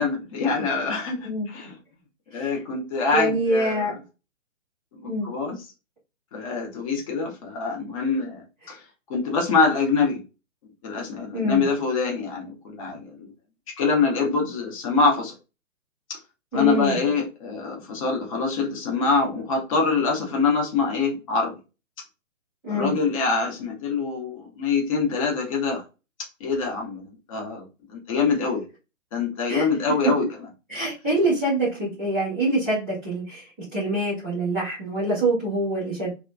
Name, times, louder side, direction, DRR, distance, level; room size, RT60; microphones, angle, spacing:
voice 1, 0.0-1.8 2.3-3.9 4.9-5.6 6.3-8.8 9.1-10.2 10.8-13.3 13.8-15.3 16.5-21.5 22.7-25.8 26.4-27.0 27.3-28.6 29.1-30.2, left 4 dB, 25° left, 0.7 m, -25 dB
voice 2, 3.1-3.9 5.1-5.3 8.6-8.7 11.3-11.6 16.5-17.0 22.6-22.9 29.5-29.7 30.7-36.1, right 1 dB, ahead, 0.4 m, -25 dB
2.8 x 2.3 x 2.4 m
figure-of-eight pair, 130°, 40 cm